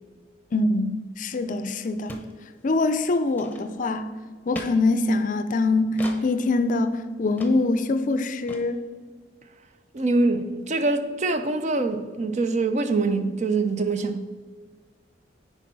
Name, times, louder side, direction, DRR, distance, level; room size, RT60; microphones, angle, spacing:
voice 1, 0.5-2.2 2.6-4.1 4.5-8.8, left 2 dB, 45° left, 0.4 m, -24 dB
sound 1, 1.4-1.5 1.7-1.8 2.1-2.3 2.6-2.9 3.3-3.9 4.5-4.7 6.0-6.2 6.7-6.8 7.4-7.5 7.8-7.9 8.1-8.2 8.5-8.6, left 1 dB, 10° left, 0.8 m, -38 dB
voice 2, 9.9-14.2, right 3 dB, 40° right, 0.5 m, -24 dB
10.0 x 4.5 x 4.6 m
head